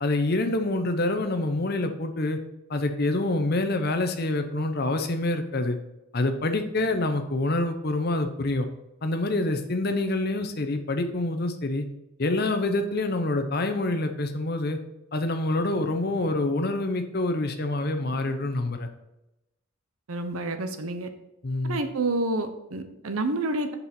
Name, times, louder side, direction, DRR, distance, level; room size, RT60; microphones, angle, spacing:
voice 1, 0.0-2.4 2.7-5.8 6.1-8.7 9.0-11.8 12.2-14.8 15.1-18.9 21.4-21.8, left 2 dB, 45° left, 7 dB, 0.7 m, -26 dB
voice 2, 20.1-21.1 21.7-23.7, right 2 dB, 80° right, 8 dB, 0.8 m, -28 dB
6.9 x 5.5 x 4.3 m, 0.92 s
head